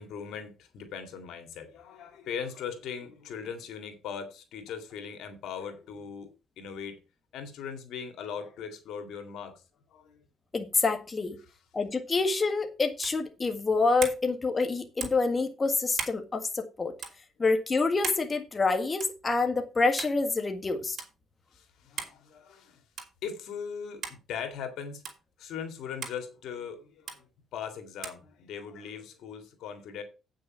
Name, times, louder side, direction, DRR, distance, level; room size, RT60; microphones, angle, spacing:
voice 1, 0.0-6.3 6.6-7.0 7.3-9.6 9.9-10.2 21.5-22.8 23.2-24.0 24.3-25.0 25.4-27.3 27.5-30.0, left 7 dB, 80° left, 2.0 m, -39 dB
voice 2, 10.5-11.4 11.7-16.9 17.4-21.0, left 3 dB, 30° left, 1.6 m, -27 dB
sound 1, 13.0-13.2 14.0-14.2 15.0-15.3 15.9-16.2 17.0-17.2 18.0-18.3 19.0-19.2 20.0-20.2 21.0-21.1 22.0-22.2 23.0-23.2 24.0-24.2 25.0-25.2 26.0-26.2 27.1-27.2 28.0-28.2, right 6 dB, 60° right, 2.9 m, -37 dB
8.6 x 6.4 x 5.7 m
cardioid pair, 90°, 0 cm